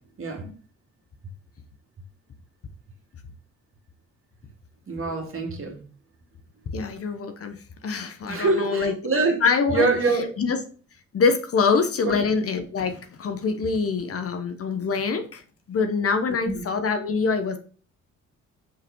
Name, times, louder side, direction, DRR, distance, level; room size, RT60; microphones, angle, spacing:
voice 1, 0.2-0.5 4.9-5.8 8.3-9.4 9.7-10.3 12.1-12.2 16.6-16.7, right 3 dB, 45° right, 2 dB, 2.3 m, -24 dB
voice 2, 6.7-7.6 7.8-8.9 9.4-9.9 10.4-10.6 11.1-15.4 15.7-17.6, left 5 dB, 50° left, 8 dB, 1.2 m, -24 dB
6.2 x 4.9 x 4.7 m, 0.39 s
cardioid pair, 90°, 30 cm